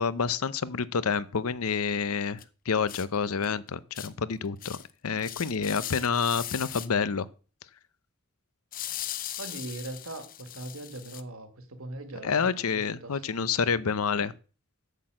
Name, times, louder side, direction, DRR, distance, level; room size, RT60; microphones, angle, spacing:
voice 1, 0.0-2.4 2.7-4.8 5.0-7.3 12.2-14.3, left 6 dB, 90° left, 0.7 m, -28 dB
sound 1, 2.4-2.5 2.9-3.1 3.4-3.5 3.9-4.1 4.6-4.9 5.2-6.9 8.7-11.2, left 12 dB, 40° left, 0.6 m, -39 dB
voice 2, 9.4-13.3, right 2 dB, 75° right, 1.9 m, -40 dB
8.3 x 6.1 x 7.7 m
head